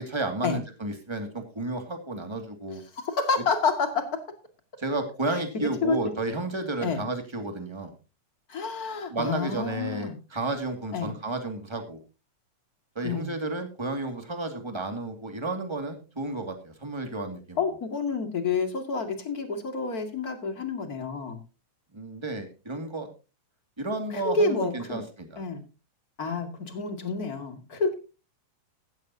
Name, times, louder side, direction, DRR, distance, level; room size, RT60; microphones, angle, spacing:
voice 1, 0.0-2.8 4.8-7.9 9.1-12.0 13.0-17.6 21.9-23.1 23.8-25.4, right 2 dB, 10° right, 6 dB, 1.8 m, -32 dB
voice 2, 3.0-4.2 5.3-6.0 6.8-7.0 8.5-10.1 10.9-11.1 13.0-13.4 17.6-21.4 24.1-25.0 25.4-25.6 26.2-27.9, left 4 dB, 30° left, 7 dB, 2.4 m, -29 dB
15.5 x 14.0 x 2.8 m, 0.31 s
omnidirectional pair, 3.5 m